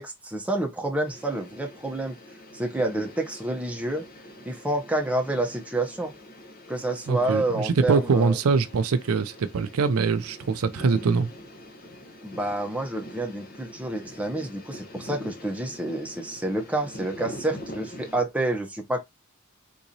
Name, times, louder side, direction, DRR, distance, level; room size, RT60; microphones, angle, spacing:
voice 1, 0.0-2.2 2.5-4.1 4.4-6.1 6.7-8.4 12.2-19.0, right 2 dB, 5° right, 0.7 m, -28 dB
sound 1, 1.1-18.2, left 1 dB, 45° left, 1.0 m, -44 dB
voice 2, 7.1-11.3, right 4 dB, 80° right, 0.5 m, -23 dB
3.8 x 2.9 x 2.6 m
head